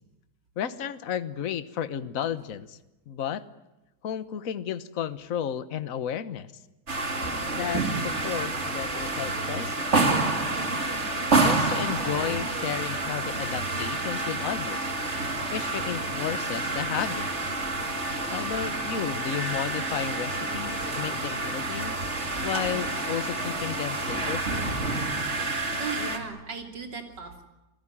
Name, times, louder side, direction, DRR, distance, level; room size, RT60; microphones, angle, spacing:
voice 1, 0.6-2.8 3.1-3.4 4.0-6.5 7.5-9.9 11.4-14.9 15.5-17.3 18.3-21.9 22.4-24.8, left 9 dB, 55° left, 12 dB, 1.5 m, -33 dB
sound 1, 6.9-26.2, right 2 dB, 40° right, 2.9 m, -28 dB
voice 2, 15.1-15.5 25.5-27.5, right 4 dB, 80° right, 4 dB, 3.8 m, -38 dB
28.0 x 19.5 x 10.0 m, 1.0 s
omnidirectional pair, 1.9 m